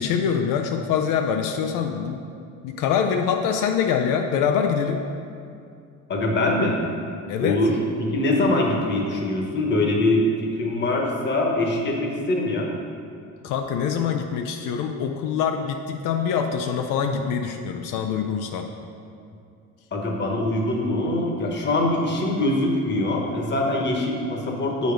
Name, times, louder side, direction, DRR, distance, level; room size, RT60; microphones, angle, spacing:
voice 1, 0.0-2.2 2.6-5.1 7.3-7.6 13.4-18.7, left 7 dB, 85° left, 5 dB, 0.6 m, -24 dB
voice 2, 6.1-6.8 7.4-12.7 19.9-24.9, left 1 dB, 35° left, 0 dB, 1.2 m, -23 dB
7.8 x 5.2 x 5.1 m, 2.4 s
cardioid pair, 150°, 31 cm